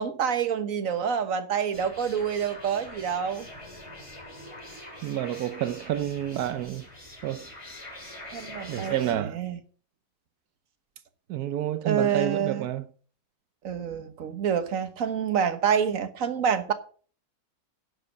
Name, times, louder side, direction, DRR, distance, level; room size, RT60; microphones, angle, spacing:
voice 1, 0.0-3.5 8.3-8.9 9.3-9.6 11.8-12.7 13.6-16.7, right 7 dB, 65° right, 1.6 m, -27 dB
sound 1, 1.7-9.1, left 1 dB, 20° left, 2.8 m, -44 dB
voice 2, 5.0-6.9 7.2-7.5 8.7-9.4 11.3-12.9, right 12 dB, 90° right, 1.2 m, -29 dB
11.0 x 7.4 x 6.4 m
omnidirectional pair, 1.6 m